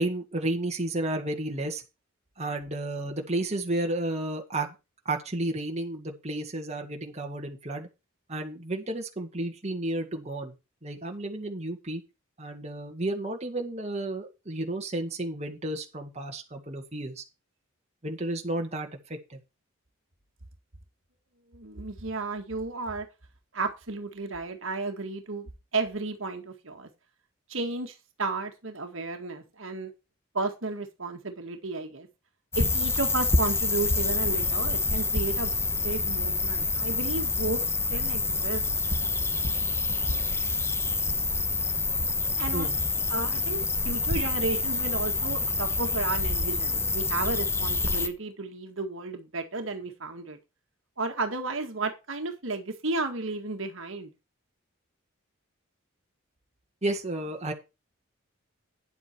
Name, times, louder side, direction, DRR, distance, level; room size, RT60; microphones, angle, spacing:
voice 1, 0.0-1.8 2.4-4.7 5.1-7.9 8.3-10.5 10.8-12.0 12.4-17.2 18.0-19.4 42.5-42.8 56.8-57.5, right 1 dB, 30° right, 1.9 m, -32 dB
voice 2, 21.5-23.1 23.5-26.9 27.5-29.9 30.3-32.1 32.6-35.6 35.8-37.6 37.9-38.6 42.4-42.7 43.1-43.6 43.8-50.4 51.0-54.1, right 3 dB, 65° right, 1.9 m, -33 dB
sound 1, 32.5-48.1, left 3 dB, 10° left, 1.1 m, -27 dB
9.9 x 8.1 x 4.5 m
head